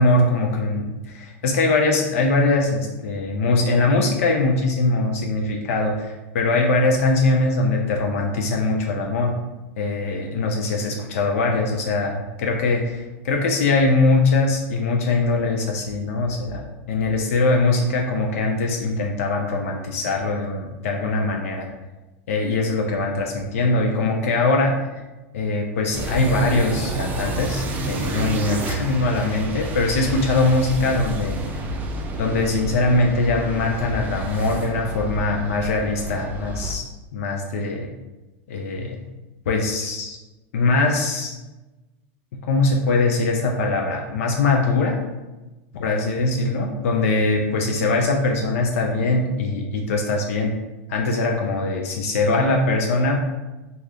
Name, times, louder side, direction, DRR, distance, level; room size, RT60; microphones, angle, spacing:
voice 1, 0.0-9.3 9.8-21.7 22.3-24.7 25.3-31.6 32.2-36.8 37.1-37.9 38.5-39.0 39.5-40.2 40.5-41.3 42.5-44.9 45.7-50.5 50.9-53.2, left 2 dB, 80° left, 1 dB, 0.4 m, -22 dB
sound 1, 25.9-36.7, right 1 dB, 20° right, 0.4 m, -29 dB
2.6 x 2.3 x 3.3 m, 1.1 s
supercardioid pair, 145°, 8 cm